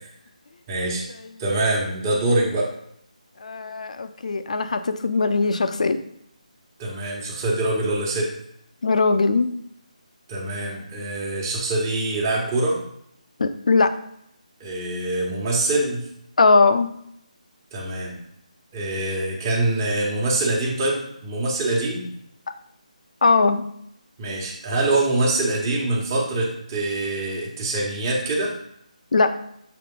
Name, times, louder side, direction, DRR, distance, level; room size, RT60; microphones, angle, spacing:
voice 1, 0.7-1.0 1.4-2.7 6.8-8.3 10.3-12.8 14.6-16.1 17.7-18.1 18.7-22.0 24.2-28.6, right 2 dB, 25° right, -3 dB, 1.3 m, -24 dB
voice 2, 3.4-6.0 8.8-9.5 13.4-13.9 16.4-16.9 23.2-23.7 29.1-29.3, left 3 dB, 60° left, 9 dB, 0.6 m, -20 dB
6.9 x 3.6 x 3.8 m, 0.73 s
figure-of-eight pair, 160°, 4 cm